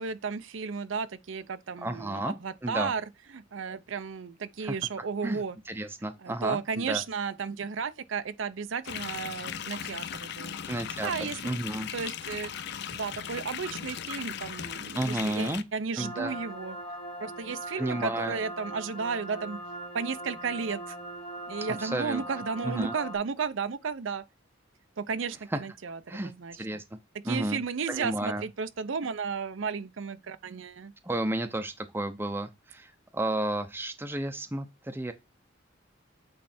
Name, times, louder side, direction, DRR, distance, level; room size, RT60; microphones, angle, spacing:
voice 1, 0.0-3.0 3.3-5.6 6.2-10.6 11.0-11.5 11.9-12.5 12.9-16.8 17.2-19.6 19.9-21.0 21.5-24.2 25.0-26.8 27.2-30.9, right 5 dB, 75° right, 0.6 m, -34 dB
voice 2, 1.8-2.3 2.6-2.9 4.6-4.7 5.2-5.4 5.7-7.0 10.7-11.9 14.9-15.6 16.0-16.3 17.8-18.4 21.8-22.2 22.6-22.9 26.1-26.3 26.6-26.8 27.2-27.6 27.9-28.4 31.0-35.1, right 1 dB, 10° right, 0.6 m, -32 dB
sound 1, 8.8-15.6, left 8 dB, 60° left, 0.5 m, -38 dB
sound 2, 16.0-23.2, right 1 dB, 30° left, 1.5 m, -40 dB
8.7 x 3.3 x 4.2 m
head